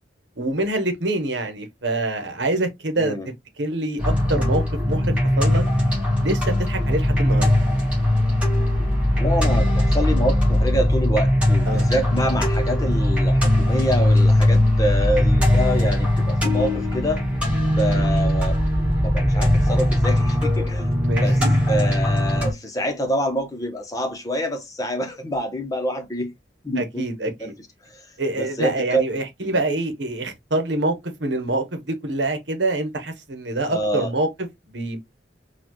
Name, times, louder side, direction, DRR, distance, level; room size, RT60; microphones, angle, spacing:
voice 1, 0.4-3.1 3.6-5.6 6.2-7.5 11.6-11.8 17.9-18.1 21.0-21.5 26.8-27.5 28.2-30.9 31.2-34.5 34.7-35.0, right 2 dB, 70° right, 1.0 m, -25 dB
voice 2, 3.0-3.3 9.2-17.2 17.6-18.6 19.0-20.9 21.2-26.3 26.6-27.5 27.9-28.0 28.4-29.0 29.4-29.7 33.7-34.1, equal, 20° left, 0.9 m, -26 dB
sound 1, 4.0-22.5, left 1 dB, 5° right, 1.5 m, -20 dB
4.1 x 2.4 x 2.9 m
head